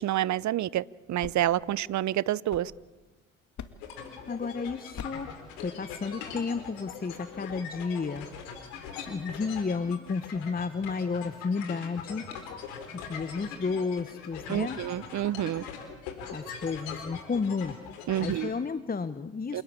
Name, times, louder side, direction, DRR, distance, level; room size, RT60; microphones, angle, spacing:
voice 1, 0.0-2.7 14.5-15.6 18.1-18.5 19.5-19.6, right 13 dB, 45° right, 22 dB, 0.8 m, -28 dB
sound 1, 1.0-3.1 3.6-4.1 4.9-5.4, left 7 dB, 45° left, 2.2 m, -45 dB
sound 2, 3.8-18.5, left 6 dB, 80° left, 4.5 m, -41 dB
voice 2, 4.3-8.3 9.0-12.3 12.9-14.8 16.3-17.8 18.2-19.6, left 4 dB, 25° left, 13 dB, 1.2 m, -32 dB
28.0 x 19.0 x 8.6 m, 1.2 s
hypercardioid pair, 55°, 39 cm